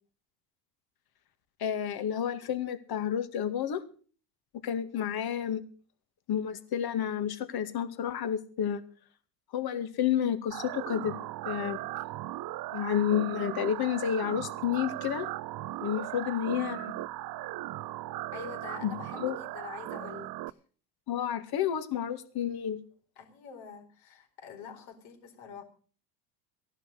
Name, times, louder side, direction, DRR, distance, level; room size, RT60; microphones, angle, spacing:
voice 1, 1.6-3.8 4.6-5.6 6.3-8.8 9.5-11.1 11.5-11.8 12.7-15.3 15.8-16.9 18.8-18.9 19.2-19.4 21.1-22.8, left 9 dB, 50° left, 10 dB, 2.2 m, -30 dB
sound 1, 10.5-20.5, right 16 dB, 45° right, 0.7 m, -38 dB
voice 2, 16.1-16.5 18.3-20.6 23.2-25.6, left 7 dB, 70° left, 4 dB, 4.6 m, -46 dB
15.5 x 11.5 x 6.4 m, 0.42 s
hypercardioid pair, 80°, 49 cm